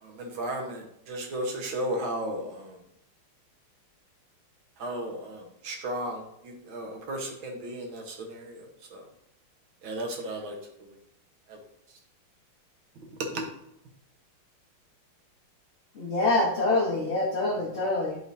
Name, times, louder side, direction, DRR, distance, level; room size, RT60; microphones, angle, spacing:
voice 1, 0.0-2.8 4.8-8.6 8.9-9.1 9.8-10.6 11.5-11.6 13.3-13.4, right 1 dB, 75° right, 1 dB, 1.9 m, -34 dB
voice 2, 15.9-18.2, left 2 dB, 40° left, -6 dB, 1.2 m, -25 dB
11.5 x 3.8 x 2.7 m, 0.75 s
omnidirectional pair, 2.2 m